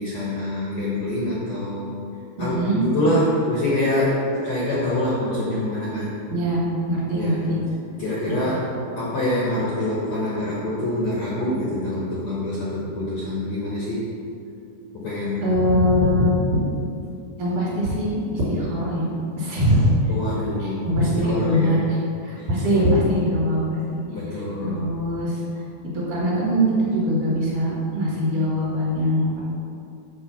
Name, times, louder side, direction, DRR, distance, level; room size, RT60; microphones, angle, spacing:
voice 1, 0.0-1.9 2.4-6.2 7.1-7.4 8.0-14.1 14.9-15.6 20.1-21.8 22.4-22.8 24.1-24.9, left 1 dB, 60° left, -6 dB, 1.8 m, -25 dB
voice 2, 2.4-2.8 6.3-7.6 15.4-16.6 17.4-19.1 19.4-19.9 20.6-22.0 22.2-24.0 24.6-25.4 25.9-29.4, equal, 55° right, -6 dB, 3.3 m, -22 dB
8.1 x 4.9 x 7.1 m, 2.5 s
omnidirectional pair, 4.8 m